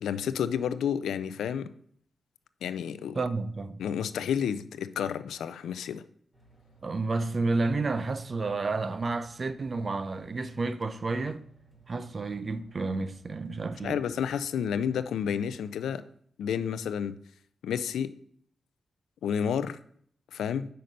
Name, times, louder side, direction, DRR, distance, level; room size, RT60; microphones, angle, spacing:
voice 1, 0.0-1.7 2.6-3.2 3.8-6.0 13.8-16.0 16.4-17.1 17.6-18.1 19.2-19.8 20.3-20.7, left 8 dB, 90° left, 0.4 m, -30 dB
voice 2, 3.1-3.8 6.8-11.4 11.9-14.0, right 3 dB, 50° right, 0.6 m, -31 dB
sound 1, 6.3-15.5, right 5 dB, 15° right, 3.7 m, -59 dB
6.5 x 5.8 x 5.3 m
cardioid pair, 55°, 0 cm